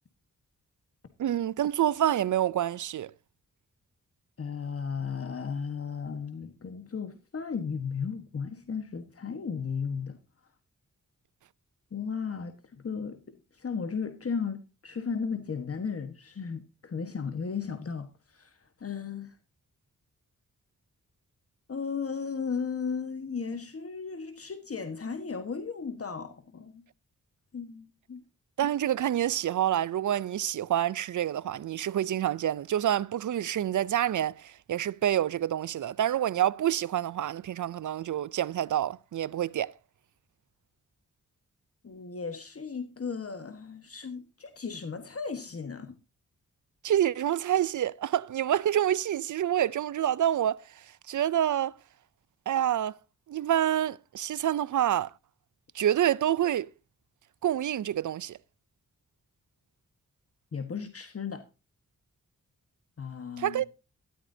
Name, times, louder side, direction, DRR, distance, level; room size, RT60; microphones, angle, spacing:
voice 1, 1.2-3.1 28.6-39.7 46.8-50.6 51.1-51.7 52.5-53.0 53.3-55.1 55.7-56.7 57.4-58.4 63.4-63.7, right 11 dB, 70° right, 0.5 m, -27 dB
voice 2, 4.4-10.2 11.9-19.4 21.7-26.8 27.5-28.2 41.8-46.0 60.5-61.5 63.0-63.6, left 5 dB, 45° left, 1.4 m, -35 dB
13.0 x 13.0 x 2.7 m
wide cardioid pair, 85°, 32 cm